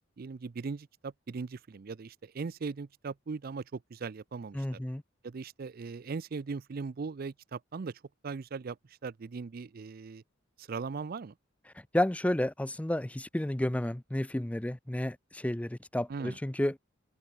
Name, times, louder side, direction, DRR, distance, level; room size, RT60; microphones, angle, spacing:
voice 1, 0.2-4.8 5.2-10.2 10.6-11.3 16.1-16.4, right 4 dB, 50° right, 0.4 m, -39 dB
voice 2, 4.5-5.0 11.9-16.7, left 1 dB, 5° left, 0.5 m, -31 dB
head